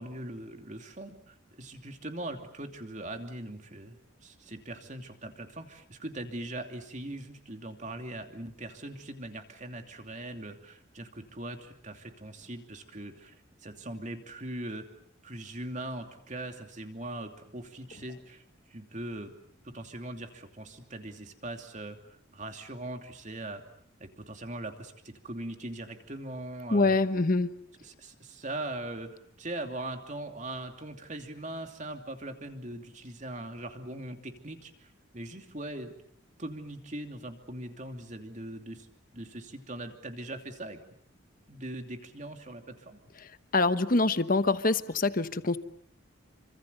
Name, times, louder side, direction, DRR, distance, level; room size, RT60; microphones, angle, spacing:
voice 1, 0.0-14.9 15.2-18.4 18.7-19.3 19.6-23.6 24.0-27.0 27.8-29.1 29.4-35.9 36.4-38.9 39.1-40.8 41.5-43.0, right 1 dB, 35° right, 5 dB, 2.8 m, -41 dB
voice 2, 26.7-27.5 43.5-45.6, left 3 dB, 45° left, 12 dB, 1.1 m, -25 dB
28.5 x 25.5 x 6.9 m, 0.65 s
head